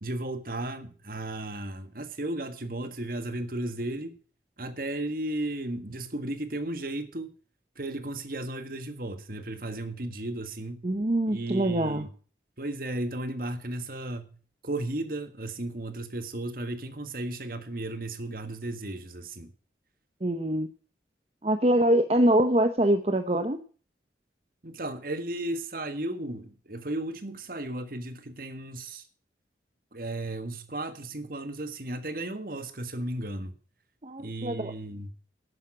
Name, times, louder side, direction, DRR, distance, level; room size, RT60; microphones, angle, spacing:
voice 1, 0.0-4.1 4.6-7.3 7.7-10.9 11.3-12.1 12.6-19.5 24.6-29.0 29.9-33.5 34.2-35.1, right 1 dB, 50° right, 1.6 m, -34 dB
voice 2, 10.8-12.1 20.2-20.7 21.4-23.6 34.0-34.7, right 1 dB, 35° right, 0.8 m, -24 dB
11.5 x 9.4 x 6.0 m
head